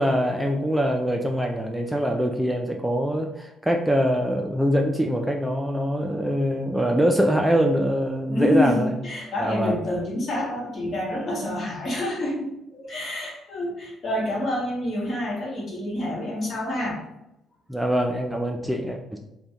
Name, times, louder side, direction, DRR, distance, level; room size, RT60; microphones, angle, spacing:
voice 1, 0.0-9.0 9.4-9.8 17.7-19.2, equal, 10° right, 2 dB, 0.3 m, -23 dB
voice 2, 8.3-17.0, left 1 dB, 50° left, -4 dB, 1.2 m, -27 dB
2.6 x 2.2 x 3.4 m, 0.89 s
hypercardioid pair, 45°, 0 cm